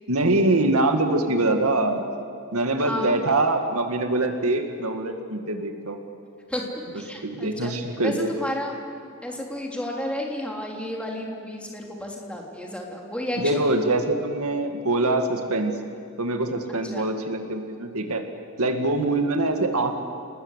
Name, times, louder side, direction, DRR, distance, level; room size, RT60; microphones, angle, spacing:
voice 1, 0.1-2.0 2.5-6.0 7.2-8.3 13.4-15.7 16.2-18.2 18.6-19.9, right 2 dB, 80° right, 5 dB, 2.1 m, -24 dB
voice 2, 2.8-3.2 6.5-6.6 6.9-7.7 8.0-8.7 9.2-13.7 16.7-17.1, left 1 dB, 5° left, -1 dB, 3.3 m, -32 dB
28.5 x 20.0 x 8.2 m, 2.4 s
head